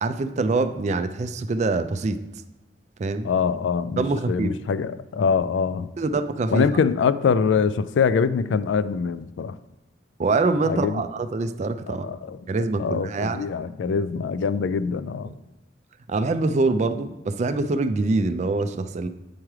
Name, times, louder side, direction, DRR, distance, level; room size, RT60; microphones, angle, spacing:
voice 1, 0.0-2.2 3.0-3.3 4.0-4.5 6.0-6.6 10.2-12.1 12.5-13.5 16.1-19.1, right 3 dB, 40° right, 9 dB, 0.4 m, -24 dB
voice 2, 3.2-5.9 6.5-9.6 10.6-11.0 11.9-12.4 12.8-15.3, left 6 dB, 90° left, 15 dB, 0.3 m, -24 dB
8.7 x 3.2 x 4.7 m, 1.0 s
head